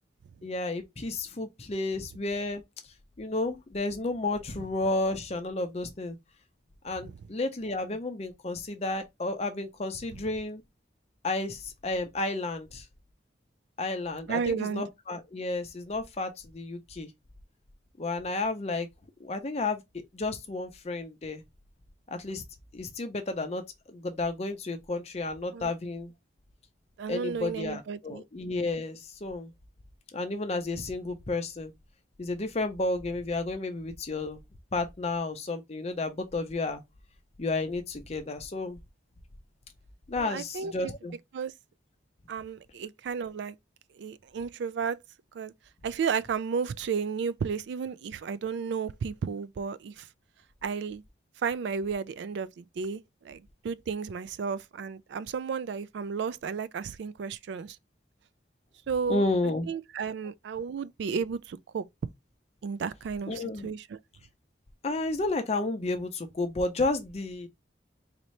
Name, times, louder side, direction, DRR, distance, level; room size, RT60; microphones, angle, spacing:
voice 1, 0.4-2.6 3.2-6.2 6.8-10.6 11.2-12.8 13.8-17.1 18.0-18.9 19.2-19.8 20.1-21.4 22.1-22.4 22.7-23.6 23.9-26.1 27.1-29.5 30.1-31.7 32.2-34.4 34.7-36.8 37.4-38.8 40.1-41.1 59.1-59.7 63.3-63.7 64.8-67.5, left 2 dB, 35° left, 0.6 m, -32 dB
voice 2, 14.3-14.8 25.5-25.7 27.0-28.2 40.2-40.9 41.3-41.5 42.3-43.6 43.9-45.0 45.3-45.5 45.8-50.1 50.6-51.0 51.4-57.8 58.9-59.2 59.7-61.9 62.6-64.0, right 6 dB, 65° right, 0.3 m, -33 dB
4.1 x 2.7 x 3.1 m
head